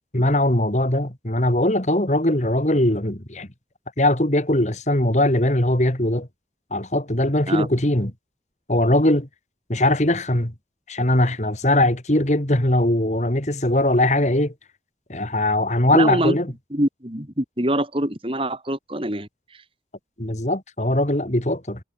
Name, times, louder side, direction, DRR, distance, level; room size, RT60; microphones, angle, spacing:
voice 1, 0.1-3.5 4.0-6.3 6.7-8.1 8.7-9.3 9.7-10.5 10.9-14.5 15.1-16.5 20.2-21.8, left 1 dB, 40° left, 2.8 m, -20 dB
voice 2, 15.9-16.4 16.7-19.6, right 1 dB, 30° right, 4.1 m, -25 dB
head